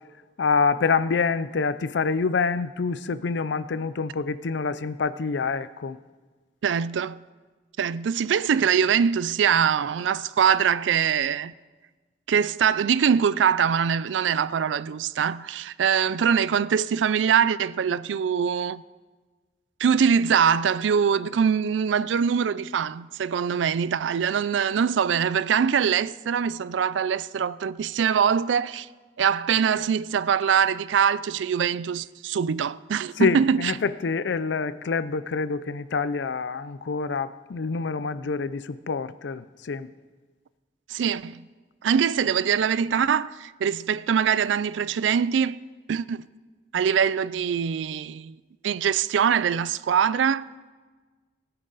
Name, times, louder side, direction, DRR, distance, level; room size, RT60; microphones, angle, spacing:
voice 1, 0.4-6.0 33.2-39.9, left 4 dB, 80° left, 0.5 m, -26 dB
voice 2, 6.6-7.2 7.8-11.5 12.3-18.8 19.8-28.9 29.2-33.7 40.9-41.4 41.8-45.6 45.9-46.3 46.7-48.4 48.6-50.5, right 7 dB, 90° right, 0.4 m, -23 dB
18.5 x 10.0 x 4.0 m
head